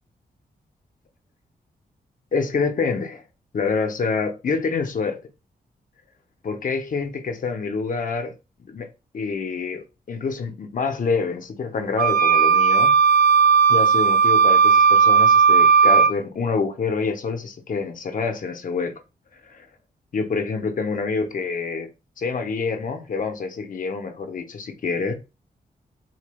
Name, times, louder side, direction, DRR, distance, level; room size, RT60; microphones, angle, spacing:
voice 1, 2.3-3.2 3.5-5.2 6.4-8.3 8.6-8.9 9.1-12.9 13.7-19.0 19.3-19.7 20.1-21.9 22.2-25.1, left 4 dB, 55° left, 0.7 m, -27 dB
sound 1, 12.0-16.1, right 6 dB, 70° right, 0.5 m, -15 dB
4.0 x 3.2 x 2.2 m
cardioid pair, 85°, 17 cm